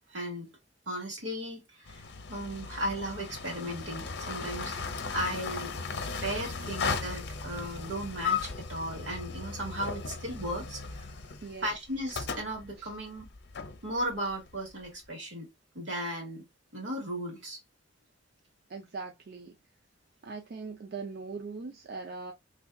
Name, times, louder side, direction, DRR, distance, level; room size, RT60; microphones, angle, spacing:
voice 1, 0.1-0.5 0.9-5.7 6.2-11.1 11.6-13.3 13.8-15.5 15.7-16.4 16.7-17.6, right 1 dB, 80° right, 2.0 m, -36 dB
sound 1, 1.9-14.9, left 5 dB, 65° left, 0.6 m, -37 dB
voice 2, 11.4-11.7 12.8-12.9 18.7-19.6 20.2-22.3, right 4 dB, 55° right, 0.5 m, -40 dB
3.3 x 2.3 x 3.6 m
head